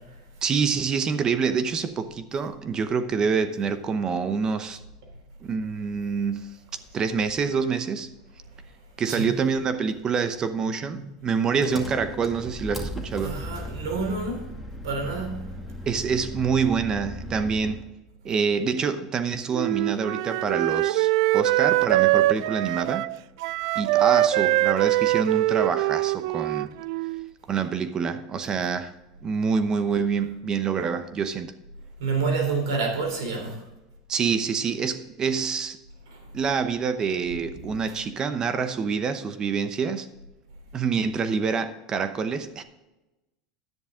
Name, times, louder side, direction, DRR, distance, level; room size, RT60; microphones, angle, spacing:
voice 1, 0.4-4.8 5.4-6.5 6.9-8.1 9.0-13.4 15.9-17.8 18.2-23.1 23.8-26.8 27.5-28.9 29.2-31.5 34.1-35.8 36.3-40.1 40.7-42.6, right 5 dB, 30° right, 0.8 m, -26 dB
Engine, 11.6-17.9, left 1 dB, 5° right, 2.2 m, -37 dB
voice 2, 13.2-14.5 14.8-15.4 32.0-33.6 36.1-36.2, right 4 dB, 85° right, 3.5 m, -28 dB
Wind instrument woodwind instrument, 19.5-27.3, right 16 dB, 70° right, 0.3 m, -23 dB
10.5 x 9.9 x 3.7 m
supercardioid pair, 110°, 2 cm